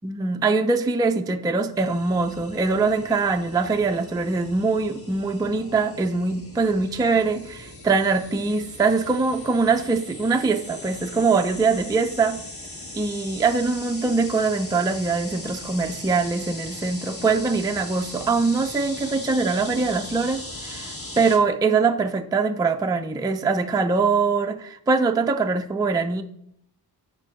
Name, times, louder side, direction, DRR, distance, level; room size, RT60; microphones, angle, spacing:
voice 1, 0.0-12.4 12.9-26.2, right 4 dB, 10° right, 6 dB, 0.3 m, -23 dB
sound 1, 1.7-21.4, left 2 dB, 35° left, 1.4 m, -39 dB
8.8 x 5.2 x 3.0 m, 0.73 s
wide cardioid pair, 140°, 40 cm